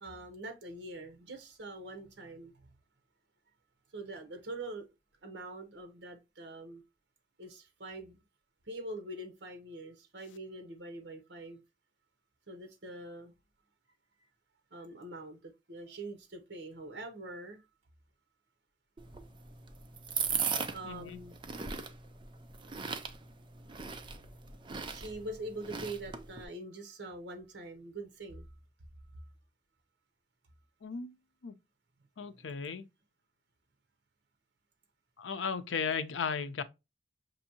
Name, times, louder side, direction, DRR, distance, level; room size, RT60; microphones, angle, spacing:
voice 1, 0.0-2.8 3.9-4.9 5.2-6.8 7.4-8.2 8.7-11.6 12.5-13.3 14.7-17.6 20.7-21.4 24.9-28.5 32.2-32.7, right 2 dB, 70° right, 0.9 m, -44 dB
sound 1, 19.0-26.5, right 6 dB, 25° right, 0.4 m, -38 dB
voice 2, 20.8-21.2 30.8-31.1 31.4-31.5 32.2-32.8 35.2-36.6, left 5 dB, 90° left, 0.5 m, -35 dB
6.0 x 2.7 x 2.8 m
head